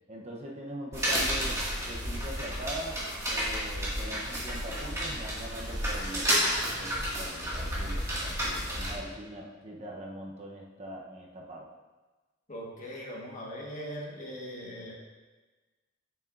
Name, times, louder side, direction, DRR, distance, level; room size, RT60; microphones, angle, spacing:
voice 1, 0.1-3.0 3.3-6.3 6.7-11.7, equal, 30° right, -2 dB, 0.9 m, -42 dB
sound 1, 0.9-8.9, equal, 15° right, 2.0 m, -31 dB
voice 2, 12.5-14.9, equal, 35° left, -3 dB, 1.5 m, -40 dB
9.1 x 7.0 x 2.6 m, 1.2 s
head